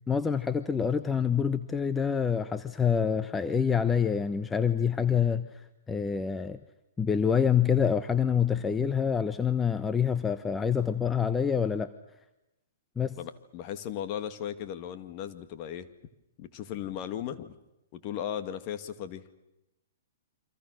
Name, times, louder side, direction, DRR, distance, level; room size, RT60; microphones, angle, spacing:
voice 1, 0.1-6.6 7.0-11.9 13.0-13.2, left 7 dB, 10° left, 11 dB, 0.9 m, -26 dB
voice 2, 13.2-15.9 16.4-17.6 17.9-19.3, left 10 dB, 40° left, 9 dB, 2.2 m, -36 dB
28.5 x 25.5 x 6.5 m, 0.94 s
hypercardioid pair, 125°, 0 cm